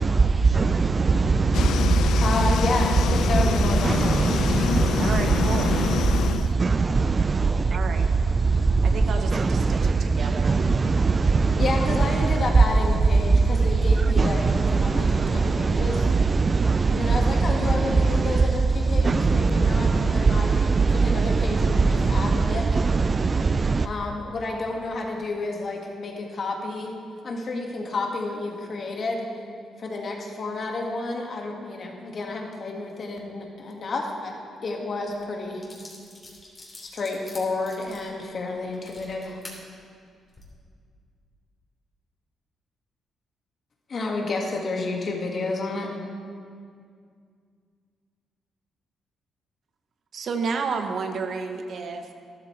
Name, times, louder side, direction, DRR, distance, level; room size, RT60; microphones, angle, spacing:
voice 1, 0.0-23.9, right 4 dB, 40° right, 0.3 m, -21 dB
sound 1, 1.5-6.5, left 8 dB, 80° left, 0.3 m, -26 dB
voice 2, 2.2-4.2 11.6-16.0 16.9-20.6 21.0-22.7 23.8-26.9 27.2-29.3 29.8-34.3 34.6-35.6 36.8-39.4 43.9-45.9, left 3 dB, 55° left, 1.8 m, -30 dB
voice 3, 5.0-5.7 7.7-8.1 8.8-10.5 50.1-52.1, right 5 dB, 65° right, 0.9 m, -31 dB
sound 2, 35.1-35.2 35.6-39.6 40.2-40.4, left 2 dB, 35° left, 3.1 m, -45 dB
12.5 x 12.0 x 3.3 m
cardioid pair, 70°, 0 cm